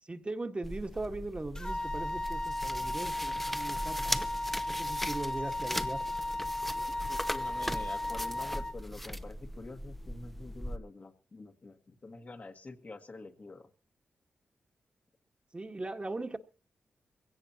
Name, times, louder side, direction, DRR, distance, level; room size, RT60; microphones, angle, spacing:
voice 1, 0.0-4.3 4.7-6.0 15.5-16.4, right 2 dB, 30° right, 1.6 m, -39 dB
sound 1, 0.6-10.8, equal, 5° left, 0.9 m, -39 dB
sound 2, 1.5-8.7, left 2 dB, 20° left, 1.7 m, -35 dB
voice 2, 6.9-13.7, left 3 dB, 45° left, 1.8 m, -47 dB
21.5 x 17.0 x 2.9 m
supercardioid pair, 50°, 4 cm